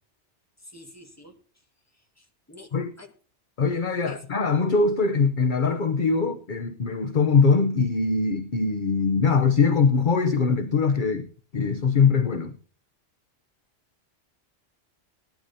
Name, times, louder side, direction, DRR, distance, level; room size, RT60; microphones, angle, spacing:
voice 1, 0.6-1.4 2.2-3.1 4.0-4.2, left 2 dB, 15° left, 1.7 m, -48 dB
voice 2, 3.6-11.3 11.5-12.5, left 5 dB, 50° left, 0.9 m, -22 dB
19.0 x 11.5 x 2.7 m
omnidirectional pair, 1.2 m